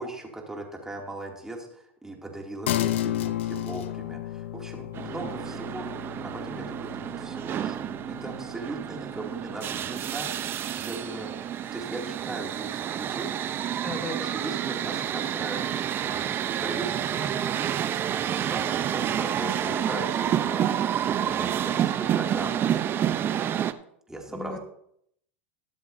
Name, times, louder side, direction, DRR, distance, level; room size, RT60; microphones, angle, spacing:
voice 1, 0.0-5.9 6.2-11.3 11.7-13.3 14.3-23.2 24.1-24.6, right 2 dB, 10° right, 0 dB, 2.6 m, -39 dB
sound 1, 2.7-12.4, left 13 dB, 75° left, 0.7 m, -34 dB
sound 2, 4.9-23.7, right 10 dB, 35° right, 0.7 m, -29 dB
Telephone, 10.0-12.0, right 11 dB, 75° right, 2.1 m, -45 dB
voice 2, 13.8-14.3 24.3-24.6, left 3 dB, 15° left, 5 dB, 1.8 m, -36 dB
21.5 x 7.6 x 2.7 m, 0.71 s
hypercardioid pair, 105°, 7 cm